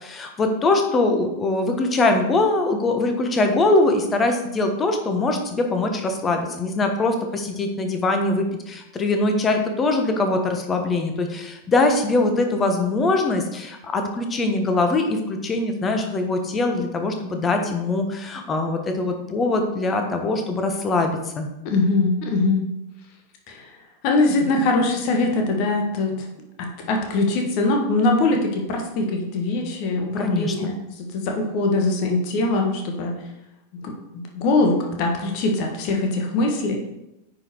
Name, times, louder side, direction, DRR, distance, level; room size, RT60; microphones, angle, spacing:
voice 1, 0.0-21.5 30.2-30.7, left 2 dB, 20° left, 5 dB, 1.3 m, -22 dB
voice 2, 21.6-22.7 23.5-23.8 24.0-26.3 26.6-33.1 33.7-36.9, left 2 dB, 45° left, 2 dB, 1.6 m, -22 dB
9.4 x 5.2 x 4.7 m, 0.90 s
figure-of-eight pair, 90°, 0 cm